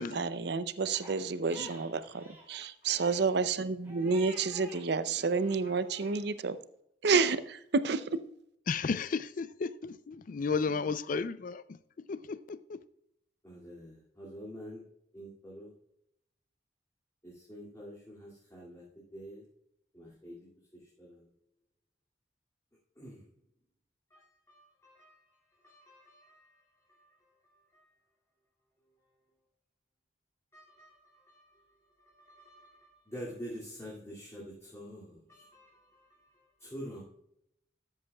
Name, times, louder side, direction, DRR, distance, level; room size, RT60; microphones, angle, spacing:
voice 1, 0.0-6.6 7.0-8.2, right 4 dB, 65° right, 0.6 m, -30 dB
Crying sobbing, 0.9-4.8 5.2-6.2, right 2 dB, 10° right, 3.1 m, -50 dB
voice 2, 8.7-12.8, left 4 dB, 45° left, 0.4 m, -34 dB
voice 3, 13.4-14.8 15.1-15.7 17.2-18.8 19.1-19.4 19.9-21.3 23.0-23.3 24.1-27.9 30.5-31.7 32.1-37.0, equal, 15° left, 2.4 m, -48 dB
13.0 x 8.2 x 2.3 m
head